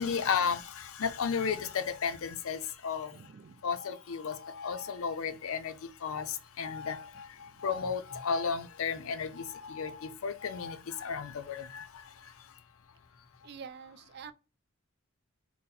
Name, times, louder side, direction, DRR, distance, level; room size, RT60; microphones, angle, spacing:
voice 1, 0.0-3.1 3.6-5.7 6.0-6.3 6.6-7.0 7.6-11.8, left 6 dB, 75° left, 0.5 m, -33 dB
voice 2, 3.1-3.6 7.4-7.6 13.4-14.3, right 6 dB, 50° right, 0.3 m, -48 dB
3.9 x 2.1 x 4.1 m
head